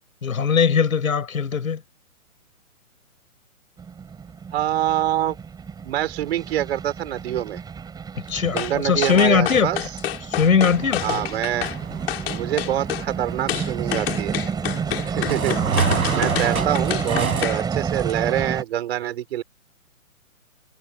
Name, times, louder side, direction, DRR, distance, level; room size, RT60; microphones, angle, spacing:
voice 1, 0.2-1.8 8.3-9.9 10.2-11.2 16.2-16.3, left 6 dB, 75° left, 7.3 m, -20 dB
sound 1, 3.8-18.6, right 6 dB, 10° right, 5.9 m, -30 dB
voice 2, 4.5-5.4 5.8-7.6 8.5-9.8 11.0-11.7 12.2-14.4 15.1-19.4, right 12 dB, 45° right, 5.8 m, -26 dB
sound 2, 8.6-8.7 9.0-11.8 12.1-13.1 13.5-17.6 18.0-18.1, left 13 dB, 45° left, 7.7 m, -28 dB
sound 3, 10.7-17.5, right 5 dB, 90° right, 6.2 m, -30 dB
hypercardioid pair, 145°, 42 cm